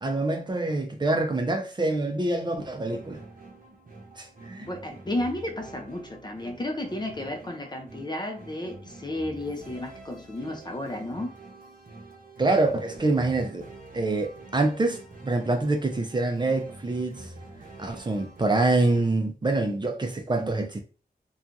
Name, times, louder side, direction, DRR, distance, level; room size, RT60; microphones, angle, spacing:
voice 1, 0.0-3.2 4.2-4.7 12.4-13.7 13.9-17.3 17.8-20.8, right 2 dB, 30° right, 0.5 m, -26 dB
sound 1, 2.6-19.0, right 2 dB, 55° right, 0.8 m, -47 dB
voice 2, 4.6-11.3, left 1 dB, 25° left, 0.5 m, -33 dB
2.9 x 2.3 x 2.5 m
wide cardioid pair, 105°, 16 cm